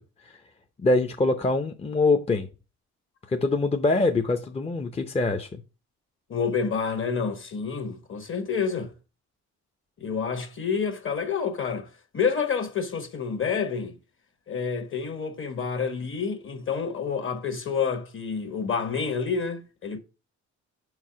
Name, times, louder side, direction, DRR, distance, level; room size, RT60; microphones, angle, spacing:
voice 1, 0.8-2.5 3.3-5.5, left 2 dB, 20° left, 0.7 m, -24 dB
voice 2, 6.3-8.9 10.0-11.9 12.1-14.0 14.5-20.0, left 6 dB, 40° left, 1.3 m, -28 dB
5.7 x 4.7 x 5.7 m
cardioid pair, 90°, 30 cm